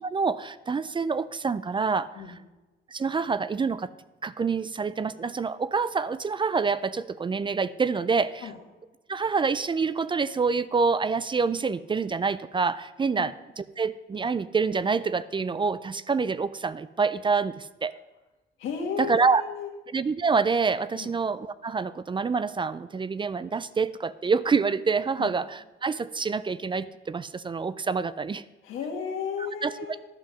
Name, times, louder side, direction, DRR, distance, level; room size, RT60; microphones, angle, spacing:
voice 1, 0.0-2.1 2.9-3.9 4.2-8.5 9.1-17.9 19.0-19.4 19.9-28.4 29.6-29.7, right 5 dB, 25° right, 16 dB, 0.4 m, -27 dB
voice 2, 18.6-19.7 20.9-21.1 25.2-25.3 28.6-30.0, left 6 dB, 90° left, 2 dB, 1.9 m, -34 dB
11.5 x 5.6 x 6.2 m, 1.1 s
cardioid pair, 90°, 20 cm